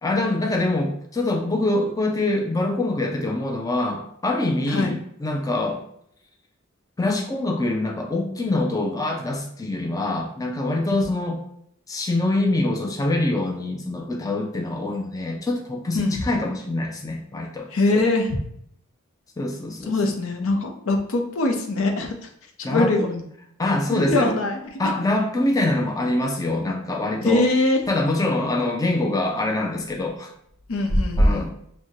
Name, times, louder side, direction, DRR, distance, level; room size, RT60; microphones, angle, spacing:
voice 1, 0.0-5.8 7.0-11.4 11.9-17.7 19.4-20.0 22.6-22.9 23.6-24.3 24.8-27.5 27.9-30.3 31.2-31.5, left 2 dB, 15° left, 1 dB, 0.4 m, -24 dB
voice 2, 4.6-5.0 10.9-11.0 15.9-16.2 17.7-18.4 19.9-22.3 22.7-23.2 23.9-24.9 27.2-27.8 30.7-31.5, left 2 dB, 75° left, 4 dB, 0.6 m, -22 dB
6.0 x 2.1 x 2.7 m, 0.69 s
head